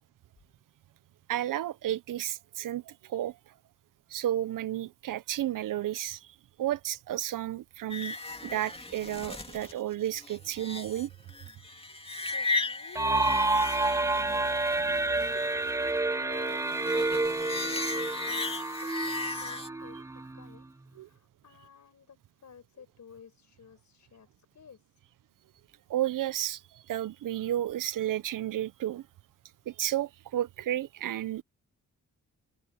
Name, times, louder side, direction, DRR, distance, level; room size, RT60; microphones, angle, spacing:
voice 1, 1.3-3.4 4.1-11.1 14.8-14.9 21.0-21.1 25.9-29.1 29.7-31.4, right 12 dB, 75° right, 0.7 m, -32 dB
sound 1, 7.9-19.7, left 3 dB, 20° left, 2.5 m, -36 dB
voice 2, 11.6-14.6 15.3-18.5 18.8-20.7 20.9-24.9, left 7 dB, 60° left, 5.4 m, -53 dB
sound 2, 13.0-20.6, right 2 dB, 10° right, 0.4 m, -29 dB
open air
cardioid pair, 80°, 32 cm